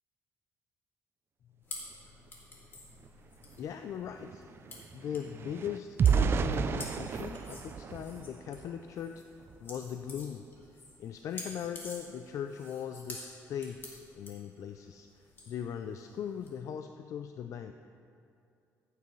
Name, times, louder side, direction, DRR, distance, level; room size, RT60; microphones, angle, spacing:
sound 1, 1.6-16.5, left 2 dB, 40° left, 2.1 m, -49 dB
sound 2, 3.0-3.1 3.4-8.9 9.4-9.6 10.0-10.2, right 6 dB, 45° right, 0.4 m, -32 dB
voice 1, 3.6-4.5 4.9-9.2 9.6-10.4 11.0-15.1 15.5-17.7, left 8 dB, 65° left, 7 dB, 0.4 m, -39 dB
14.0 x 8.4 x 3.2 m, 2.5 s
cardioid pair, 105°, 6 cm